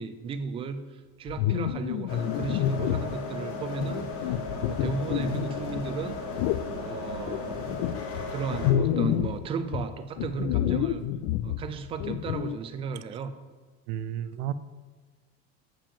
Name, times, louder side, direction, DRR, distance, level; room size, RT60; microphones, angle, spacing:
voice 1, 0.0-6.2 6.8-7.7 8.3-11.0 11.4-13.3, right 5 dB, 20° right, 9 dB, 0.4 m, -35 dB
sound 1, 1.3-3.2 3.8-5.9 6.4-6.7 7.2-9.4 9.7-12.6, left 11 dB, 65° left, 0.5 m, -29 dB
sound 2, 2.1-8.7, left 4 dB, 45° left, 1.3 m, -36 dB
sound 3, 4.0-9.4, right 3 dB, 90° right, 1.1 m, -47 dB
voice 2, 13.9-14.5, right 11 dB, 75° right, 15 dB, 0.6 m, -32 dB
7.1 x 5.9 x 6.8 m, 1.4 s
cardioid pair, 155°, 32 cm